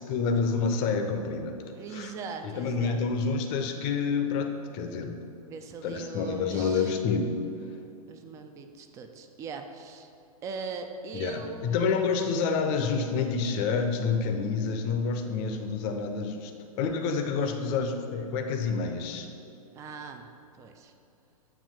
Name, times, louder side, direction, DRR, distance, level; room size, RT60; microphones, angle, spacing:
voice 1, 0.0-1.6 1.9-2.1 2.4-5.1 5.8-7.4 11.1-16.5 16.8-19.3, left 5 dB, 30° left, 5 dB, 0.7 m, -28 dB
voice 2, 1.7-3.0 5.4-7.0 8.1-10.1 10.4-12.0 19.7-20.3 20.5-20.9, right 4 dB, 15° right, 6 dB, 0.4 m, -40 dB
8.6 x 3.0 x 6.4 m, 2.7 s
figure-of-eight pair, 105°, 19 cm